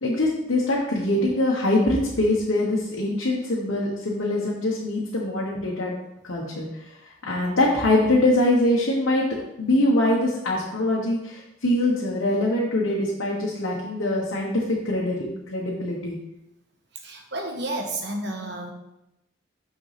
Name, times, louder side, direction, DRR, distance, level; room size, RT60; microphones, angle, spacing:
voice 1, 0.0-5.9 6.2-9.2 9.6-16.2, left 1 dB, 90° left, -4 dB, 1.2 m, -23 dB
voice 2, 16.9-18.7, right 2 dB, 60° right, 2 dB, 1.3 m, -31 dB
6.4 x 6.3 x 3.4 m, 0.89 s
head